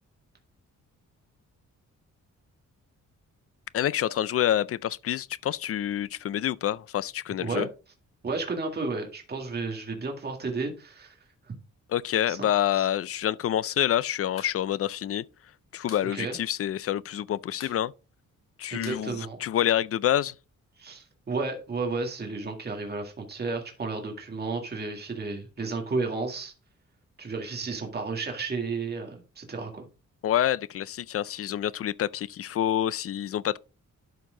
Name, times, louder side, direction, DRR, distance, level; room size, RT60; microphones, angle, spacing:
voice 1, 3.7-7.7 11.9-15.2 15.7-17.9 18.6-20.3 30.2-33.6, left 11 dB, 50° left, 0.4 m, -27 dB
voice 2, 8.2-11.5 12.3-12.5 12.8-12.9 16.1-16.4 18.7-19.4 20.8-26.5 27.2-29.9, right 3 dB, 30° right, 2.0 m, -32 dB
sound 1, 14.3-14.6 14.8-14.9 15.2-16.1 16.4-16.5 16.8-17.2 17.5-19.9, left 7 dB, 90° left, 2.1 m, -48 dB
12.0 x 4.5 x 3.8 m
wide cardioid pair, 140°, 31 cm